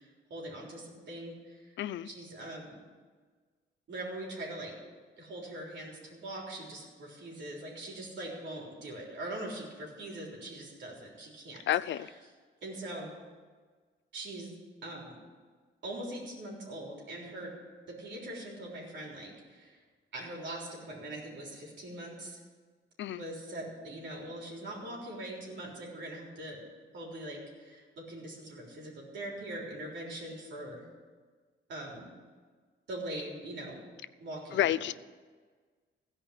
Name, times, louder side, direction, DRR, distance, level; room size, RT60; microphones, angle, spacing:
voice 1, 0.0-1.7 2.0-2.8 3.9-4.7 5.2-11.6 12.0-12.1 12.6-13.1 14.1-14.5 14.8-15.1 15.8-17.5 17.9-19.8 20.1-22.4 23.1-26.6 26.9-30.9 31.7-32.1 32.9-33.8 34.2-34.9, right 1 dB, 65° right, 3.8 m, -42 dB
voice 2, 1.8-2.1 11.7-12.1 23.0-23.2 34.5-34.9, left 12 dB, 65° left, 0.5 m, -30 dB
16.0 x 5.3 x 9.9 m
wide cardioid pair, 170°, 20 cm